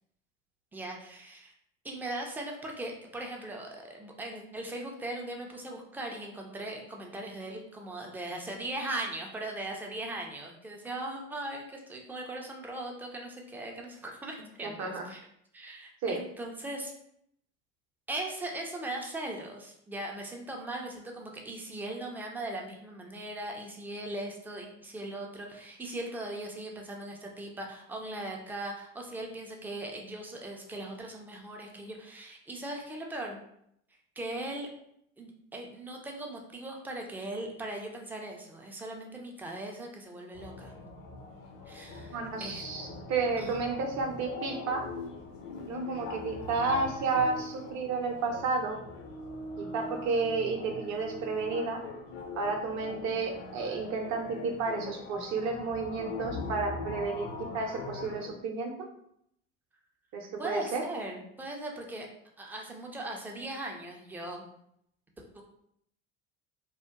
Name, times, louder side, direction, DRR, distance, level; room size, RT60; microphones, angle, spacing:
voice 1, 0.7-1.5 1.8-15.2 15.5-16.9 18.1-33.4 34.2-34.7 35.2-40.8 41.7-42.6 43.4-43.6 60.4-62.1 62.4-64.5 65.2-65.4, right 1 dB, 5° right, 0 dB, 0.3 m, -39 dB
voice 2, 14.6-15.0 16.0-16.2 42.1-44.9 45.7-48.8 49.6-51.8 52.4-57.3 57.5-58.7 60.1-60.8, right 4 dB, 45° right, 3 dB, 0.6 m, -31 dB
sound 1, 40.3-58.3, left 3 dB, 55° left, 0.5 m, -41 dB
2.8 x 2.1 x 2.3 m, 0.72 s
hypercardioid pair, 65°, 38 cm